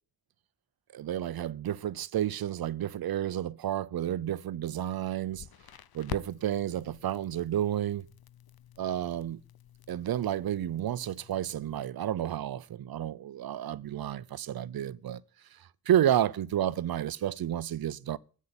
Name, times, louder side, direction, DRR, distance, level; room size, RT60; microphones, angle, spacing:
voice 1, 0.9-5.5 5.9-8.1 8.8-9.4 9.9-15.2 15.6-18.2, right 11 dB, 70° right, 0.7 m, -31 dB
Crackle, 5.3-11.8, left 10 dB, 75° left, 0.8 m, -48 dB
9.7 x 8.5 x 9.6 m
cardioid pair, 45°, 37 cm